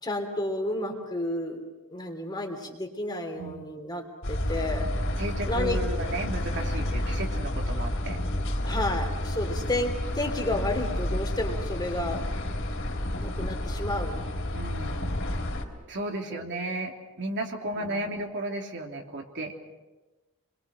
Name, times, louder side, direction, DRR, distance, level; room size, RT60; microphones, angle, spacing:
voice 1, 0.0-1.6 1.9-4.9 5.5-5.8 8.6-12.2 13.2-14.3 16.3-16.4 17.8-18.2, left 1 dB, 20° left, 3 dB, 3.1 m, -31 dB
voice 2, 3.3-3.6 5.2-8.2 9.6-9.8 14.5-15.3 15.9-19.5, right 1 dB, 55° right, 1 dB, 3.0 m, -34 dB
sound 1, 4.2-15.6, left 1 dB, 60° left, 3.6 m, -30 dB
29.5 x 22.5 x 6.3 m, 1.1 s
head